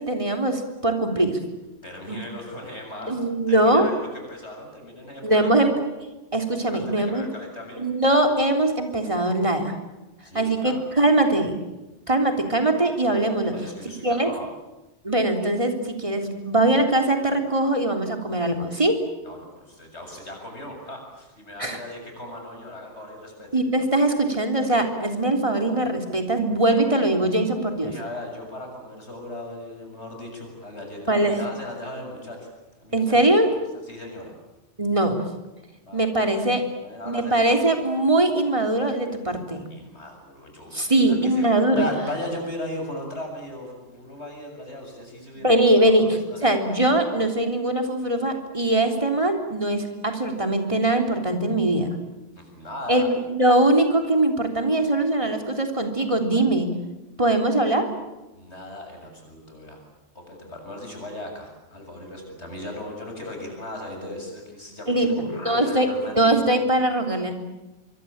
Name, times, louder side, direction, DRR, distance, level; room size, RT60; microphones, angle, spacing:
voice 1, 0.0-1.4 2.1-2.2 3.1-3.9 5.2-5.7 6.3-7.2 7.8-9.7 10.3-11.6 12.1-13.5 14.0-14.3 15.0-19.0 21.6-21.8 23.5-27.9 31.1-31.4 32.9-33.5 34.8-35.2 35.9-36.6 37.1-39.7 40.7-41.9 45.4-46.1 46.4-51.9 52.9-56.7 57.2-57.9 64.9-65.9 66.2-67.3, right 1 dB, 25° right, 4 dB, 3.5 m, -21 dB
voice 2, 1.8-3.2 3.5-5.5 6.7-7.8 10.2-10.8 13.5-14.5 19.2-23.5 27.8-32.5 32.8-33.3 33.8-34.3 35.8-36.0 36.8-37.6 39.7-46.5 52.4-53.1 58.3-59.8 60.1-66.3, left 1 dB, 70° left, 2 dB, 7.7 m, -37 dB
25.0 x 24.0 x 8.8 m, 1.0 s
omnidirectional pair, 1.2 m